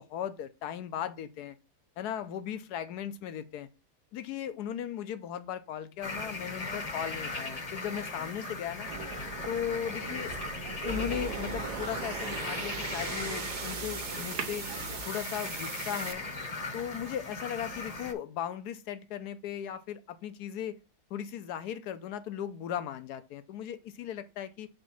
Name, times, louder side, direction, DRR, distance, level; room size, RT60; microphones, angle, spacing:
voice 1, 0.0-1.6 2.0-3.7 4.1-8.9 9.4-10.3 10.8-14.7 15.0-16.2 16.7-20.8 21.1-24.7, left 9 dB, 80° left, 1.2 m, -37 dB
sound 1, 6.0-18.1, left 3 dB, 30° left, 0.8 m, -39 dB
sound 2, 8.9-15.1, right 5 dB, 85° right, 1.5 m, -42 dB
sound 3, 10.9-16.1, right 5 dB, 50° right, 0.5 m, -39 dB
5.2 x 3.6 x 5.8 m
omnidirectional pair, 1.7 m